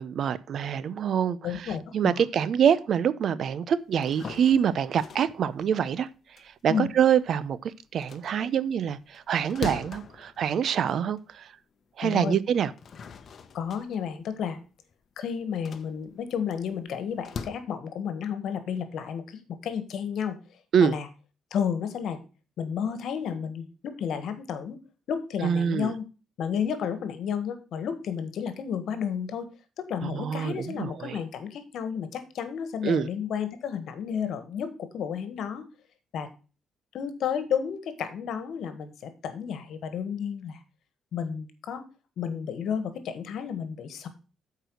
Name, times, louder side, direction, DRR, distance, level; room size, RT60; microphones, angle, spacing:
voice 1, 0.0-6.1 6.6-11.5 12.0-12.7 20.7-21.0 25.4-25.9 30.0-31.2 32.8-33.1, right 8 dB, 65° right, 0.6 m, -25 dB
voice 2, 1.4-2.2 6.7-6.9 12.0-12.4 13.5-14.6 15.2-20.4 20.8-21.1 21.5-22.2 22.6-24.8 25.1-26.1 26.4-29.5 29.8-35.7 36.1-36.3 36.9-40.6 41.1-41.8 42.2-44.1, left 7 dB, 70° left, 1.4 m, -32 dB
sound 1, 3.9-7.5 7.9-11.4 11.8-11.9 12.5-17.5, left 6 dB, 50° left, 0.9 m, -42 dB
7.9 x 4.8 x 6.2 m
cardioid pair, 90°, 0 cm